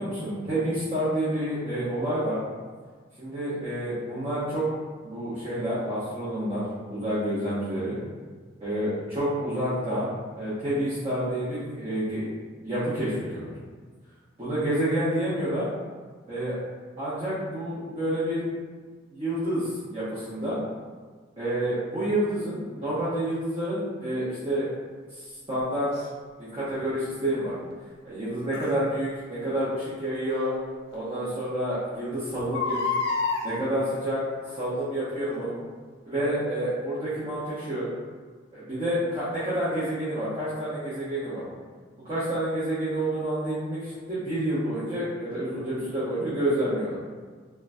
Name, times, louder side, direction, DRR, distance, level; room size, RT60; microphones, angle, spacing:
voice 1, 0.0-2.4 3.2-4.6 5.0-8.0 8.6-10.1 10.4-12.3 12.6-13.5 14.4-15.6 16.3-16.5 17.0-18.4 19.1-20.6 21.4-24.6 25.1-25.9 26.4-27.5 28.0-30.5 30.9-32.8 33.4-34.2 34.5-35.5 36.1-37.9 38.5-41.4 42.0-47.0, right 1 dB, 30° right, -12 dB, 0.9 m, -29 dB
Crying sobbing, 25.9-26.1 28.5-28.7 30.3-30.4 30.9-31.0 31.2-31.3 32.4-33.5 34.4-34.7 35.3-35.4, left 4 dB, 55° left, 0.5 m, -28 dB
3.6 x 2.3 x 2.6 m, 1.5 s
head